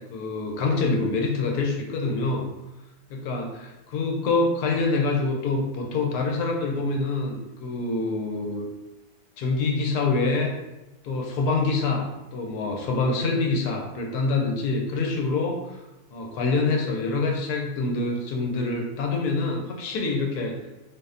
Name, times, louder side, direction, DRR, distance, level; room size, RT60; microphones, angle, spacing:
voice 1, 0.0-2.4 3.1-8.7 9.4-10.5 11.0-15.8 16.1-20.6, left 3 dB, 85° left, 1 dB, 1.1 m, -26 dB
2.7 x 2.0 x 2.4 m, 0.98 s
omnidirectional pair, 1.6 m